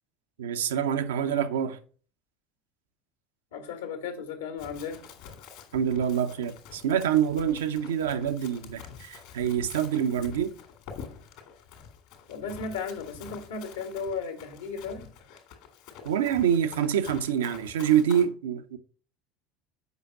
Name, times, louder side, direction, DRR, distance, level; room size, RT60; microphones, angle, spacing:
voice 1, 0.4-1.8 5.7-10.5 16.0-18.8, right 9 dB, 70° right, 0.7 m, -26 dB
voice 2, 3.5-5.0 12.3-15.1, left 5 dB, 70° left, 1.9 m, -35 dB
Run, 4.6-18.2, left 7 dB, 55° left, 2.0 m, -47 dB
8.2 x 5.7 x 4.9 m
figure-of-eight pair, 65°, 0 cm